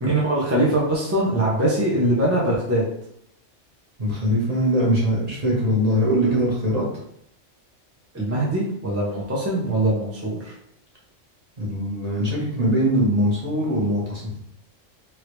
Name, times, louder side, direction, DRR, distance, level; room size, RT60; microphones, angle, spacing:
voice 1, 0.0-2.8 6.2-6.3 8.1-10.5, right 1 dB, 15° right, -5 dB, 0.5 m, -22 dB
voice 2, 4.0-6.8 11.6-14.3, equal, 35° right, -5 dB, 1.0 m, -22 dB
3.2 x 2.6 x 3.0 m, 0.74 s
omnidirectional pair, 1.3 m